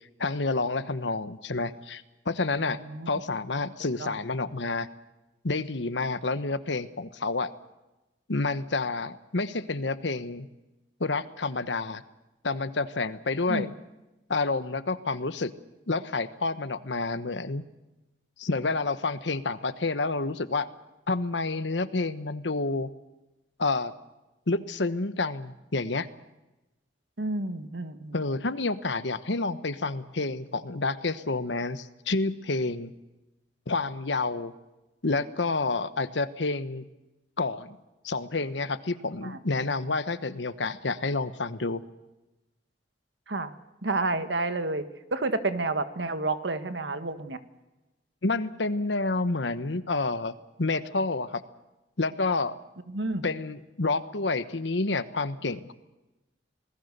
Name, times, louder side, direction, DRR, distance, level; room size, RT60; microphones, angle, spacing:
voice 1, 0.2-2.8 3.1-4.9 5.4-7.5 8.3-10.5 11.0-12.0 12.4-13.7 14.3-15.5 15.9-17.6 18.4-20.7 21.1-22.9 23.6-23.9 24.5-26.1 28.1-32.9 33.7-34.5 35.0-36.8 37.4-37.8 38.0-41.8 48.2-50.3 50.6-51.4 52.0-52.6 53.2-55.7, left 3 dB, 85° left, 13 dB, 1.2 m, -29 dB
voice 2, 2.6-3.1 4.0-4.1 13.5-13.7 27.2-28.1 39.2-39.4 43.3-43.5 43.8-44.9 45.1-47.4 52.9-53.2, right 2 dB, 85° right, 10 dB, 1.6 m, -30 dB
26.5 x 19.5 x 6.8 m, 1.0 s
head